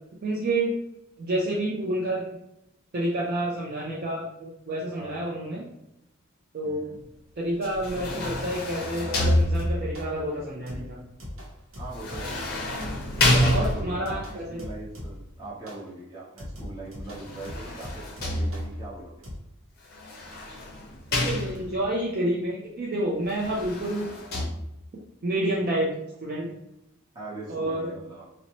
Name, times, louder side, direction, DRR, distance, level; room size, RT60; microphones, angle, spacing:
voice 1, 0.2-0.7 1.2-2.3 2.9-5.7 6.5-6.9 7.4-11.0 12.3-12.5 13.5-14.6 21.1-24.1 25.2-26.5 27.5-27.9, right 1 dB, 45° right, -4 dB, 0.4 m, -29 dB
voice 2, 5.0-5.4 6.6-7.0 11.8-12.5 13.1-19.2 27.1-28.3, right 2 dB, 20° right, -7 dB, 0.8 m, -40 dB
sound 1, 7.6-10.0 11.9-14.2 17.0-18.9 19.9-21.9 23.2-24.4, left 1 dB, 45° left, 0.6 m, -28 dB
sound 2, 9.2-10.2 10.7-12.5 12.8-13.2 13.5-15.3 15.7-15.9 16.4-18.8 19.2-19.4, left 1 dB, 75° right, 0.8 m, -41 dB
2.6 x 2.0 x 2.9 m, 0.84 s
head